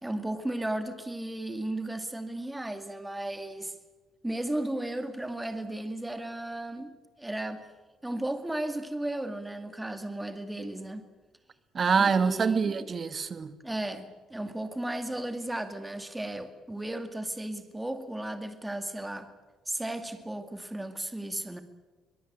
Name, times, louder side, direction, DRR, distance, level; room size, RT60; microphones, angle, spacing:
voice 1, 0.0-3.7 4.2-6.9 7.2-7.6 8.0-11.1 12.0-12.9 13.6-19.3 19.7-21.6, right 1 dB, 10° right, 2.3 m, -35 dB
voice 2, 11.7-13.5, right 5 dB, 35° right, 1.6 m, -25 dB
23.5 x 21.0 x 8.9 m
cardioid pair, 120°, 0 cm